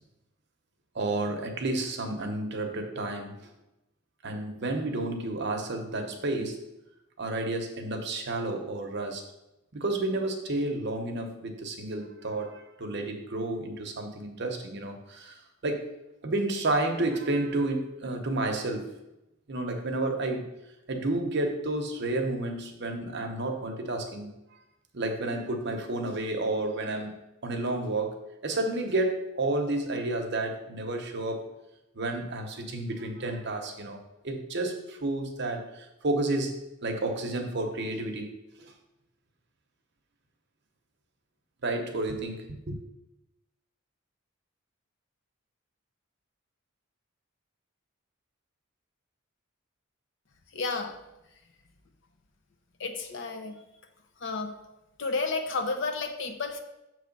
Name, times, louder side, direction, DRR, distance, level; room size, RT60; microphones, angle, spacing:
voice 1, 0.9-3.5 4.2-6.6 7.2-9.2 9.7-15.9 16.2-18.9 19.5-20.5 20.9-24.3 24.9-27.1 27.4-31.5 31.9-34.0 34.2-38.3 38.6-38.7 41.6-42.8, right 2 dB, 55° right, 4 dB, 0.8 m, -31 dB
voice 2, 50.5-50.9 52.8-53.6 54.2-54.5 55.0-56.6, left 3 dB, 60° left, 5 dB, 0.7 m, -31 dB
7.0 x 3.2 x 5.2 m, 0.93 s
head